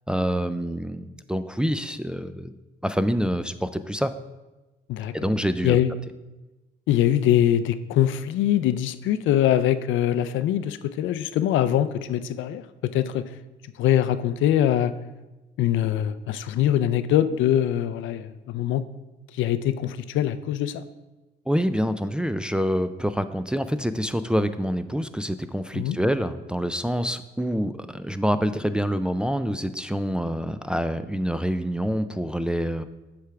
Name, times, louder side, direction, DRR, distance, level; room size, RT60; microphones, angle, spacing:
voice 1, 0.1-2.5 2.8-4.1 5.1-5.8 21.5-32.8, equal, 5° right, 10 dB, 0.3 m, -26 dB
voice 2, 6.9-13.2 13.8-14.9 15.6-18.8 19.3-20.8 25.7-26.0, left 11 dB, 80° left, 13 dB, 0.4 m, -23 dB
7.8 x 3.5 x 5.7 m, 1.1 s
cardioid pair, 90°, 20 cm